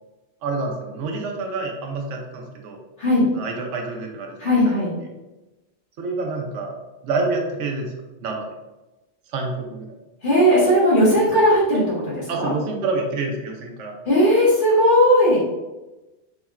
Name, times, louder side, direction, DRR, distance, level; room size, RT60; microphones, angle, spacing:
voice 1, 0.4-2.8 3.3-4.7 6.0-6.7 7.0-7.9 8.2-8.5 9.3-9.9 12.3-13.9, right 3 dB, 85° right, 2 dB, 0.9 m, -27 dB
voice 2, 4.4-4.9 10.2-12.5 14.1-15.4, equal, 45° left, -6 dB, 1.0 m, -17 dB
3.6 x 2.1 x 2.3 m, 1.1 s
omnidirectional pair, 1.2 m